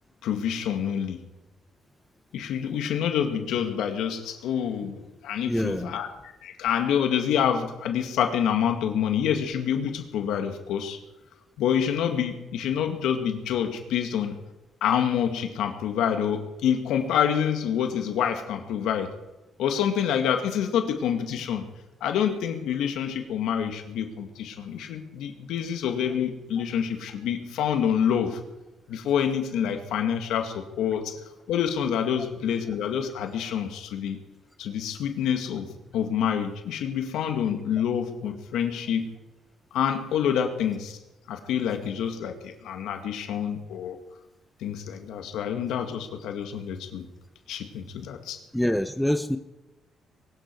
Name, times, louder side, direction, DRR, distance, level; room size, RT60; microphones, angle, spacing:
voice 1, 0.2-1.2 2.3-11.0 11.6-14.3 14.8-19.1 19.6-21.6 22.0-28.4 28.9-31.2 31.5-34.2 34.6-39.1 39.7-41.0 41.3-44.0 44.6-47.1 47.5-48.4, left 8 dB, 85° left, 5 dB, 2.0 m, -27 dB
voice 2, 5.5-5.9 48.5-49.4, left 1 dB, 5° left, 9 dB, 0.7 m, -25 dB
22.5 x 12.0 x 4.7 m, 1.0 s
cardioid pair, 105°, 0 cm